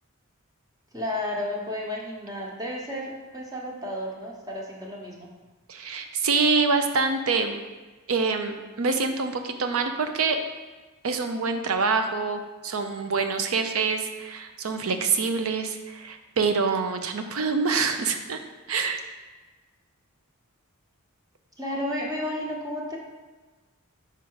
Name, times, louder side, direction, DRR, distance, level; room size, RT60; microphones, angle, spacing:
voice 1, 0.9-5.3 21.6-23.0, left 1 dB, 15° right, -2 dB, 1.0 m, -32 dB
voice 2, 5.7-7.6 8.1-10.4 11.0-18.4 18.7-19.0, right 4 dB, 75° right, 7 dB, 0.6 m, -26 dB
5.1 x 4.4 x 4.7 m, 1.3 s
head